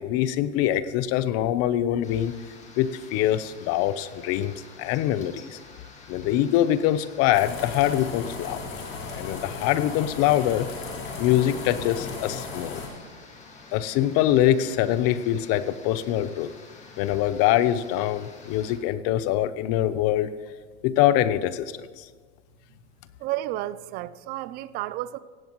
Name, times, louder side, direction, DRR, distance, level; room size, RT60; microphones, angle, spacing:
voice 1, 0.0-2.3 2.8-5.6 6.1-8.6 9.1-10.7 11.2-12.8 13.7-16.5 17.0-20.3 20.8-22.1, left 12 dB, 45° left, 0.8 m, -24 dB
sound 1, 2.0-18.8, left 3 dB, 20° left, 2.0 m, -48 dB
sound 2, 7.3-12.9, left 4 dB, 85° left, 4.3 m, -36 dB
voice 2, 23.2-25.2, right 15 dB, 30° right, 0.4 m, -31 dB
17.5 x 15.5 x 3.1 m
supercardioid pair, 130°, 36 cm